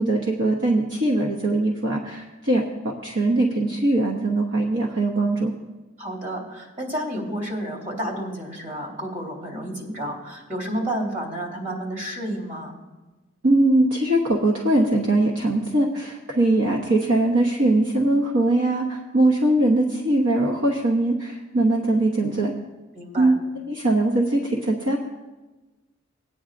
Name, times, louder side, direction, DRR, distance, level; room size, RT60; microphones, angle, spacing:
voice 1, 0.0-5.5 13.4-22.5 23.2-23.4 23.7-25.0, right 2 dB, 65° right, -1 dB, 1.0 m, -21 dB
voice 2, 6.0-12.8 22.9-23.3, right 1 dB, 35° right, -1 dB, 3.4 m, -31 dB
19.0 x 9.4 x 2.6 m, 1.2 s
head